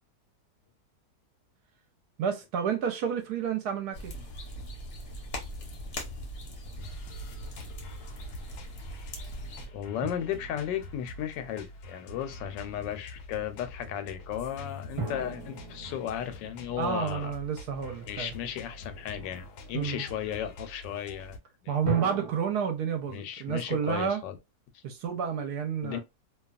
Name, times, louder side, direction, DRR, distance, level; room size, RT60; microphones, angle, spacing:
voice 1, 2.2-4.1 16.8-18.3 19.7-20.0 21.7-24.2 24.8-26.0, right 7 dB, 70° right, 1.1 m, -30 dB
sound 1, 3.9-9.7, equal, 50° left, 0.8 m, -40 dB
sound 2, 6.8-21.4, left 1 dB, 75° left, 1.1 m, -46 dB
voice 2, 9.7-17.3 18.1-21.8 23.1-24.4 25.8-26.0, left 10 dB, 90° left, 1.3 m, -35 dB
sound 3, 10.0-12.0 15.0-18.2 21.8-22.3, right 3 dB, 35° right, 0.4 m, -39 dB
2.8 x 2.3 x 2.3 m
omnidirectional pair, 1.9 m